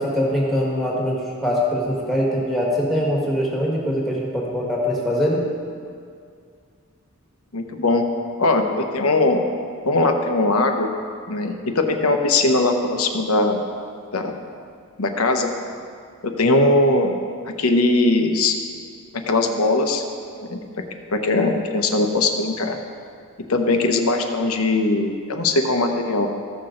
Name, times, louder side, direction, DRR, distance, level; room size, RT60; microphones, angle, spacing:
voice 1, 0.0-5.4, equal, ahead, -4 dB, 1.5 m, -22 dB
voice 2, 7.5-8.1 8.4-9.4 9.8-10.9 11.3-13.6 14.1-14.3 15.0-15.5 16.2-17.2 17.4-18.6 19.3-20.0 20.4-20.6 21.1-22.8 23.5-26.3, left 2 dB, 75° left, 4 dB, 0.9 m, -20 dB
15.0 x 6.0 x 3.8 m, 2.2 s
head